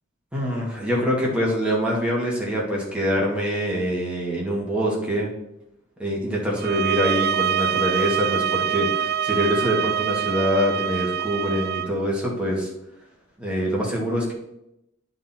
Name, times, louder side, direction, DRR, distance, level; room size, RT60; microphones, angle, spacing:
voice 1, 0.3-5.3 6.0-12.7 13.4-14.3, equal, 5° right, -4 dB, 2.1 m, -24 dB
sound 1, 6.6-11.9, right 9 dB, 55° right, 0.3 m, -25 dB
10.0 x 4.0 x 4.4 m, 0.83 s
head